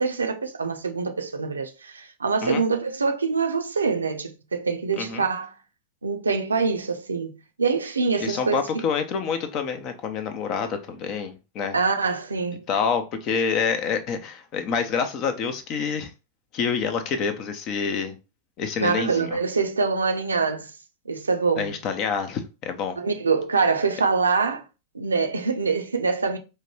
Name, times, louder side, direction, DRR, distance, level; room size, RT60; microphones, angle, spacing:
voice 1, 0.0-5.5 6.0-8.8 11.7-12.7 18.8-20.7 21.1-21.8 23.0-24.6 24.9-26.4, right 4 dB, 75° right, 0.6 m, -25 dB
voice 2, 8.2-11.8 12.7-16.1 16.5-18.2 18.6-19.3 21.6-23.0, left 6 dB, 40° left, 0.6 m, -27 dB
4.6 x 2.2 x 3.1 m
figure-of-eight pair, 90°, 0 cm